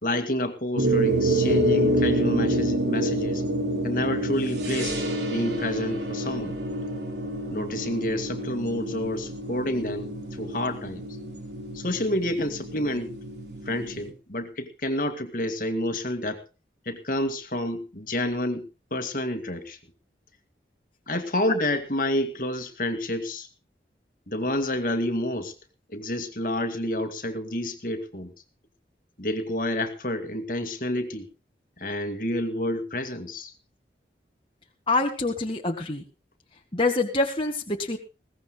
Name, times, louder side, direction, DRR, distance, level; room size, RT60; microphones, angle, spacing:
voice 1, 0.0-3.4 3.8-6.6 7.5-11.0 11.7-13.1 13.7-16.4 16.9-19.8 21.1-23.5 24.3-25.5 25.9-28.3 29.2-31.3 31.8-33.5, left 1 dB, 50° left, 7 dB, 2.0 m, -29 dB
sound 1, 0.8-14.1, right 1 dB, 75° right, 4.0 m, -28 dB
voice 2, 34.9-36.0 36.7-38.0, left 2 dB, 30° left, 1 dB, 1.8 m, -25 dB
21.0 x 17.5 x 2.3 m, 0.29 s
head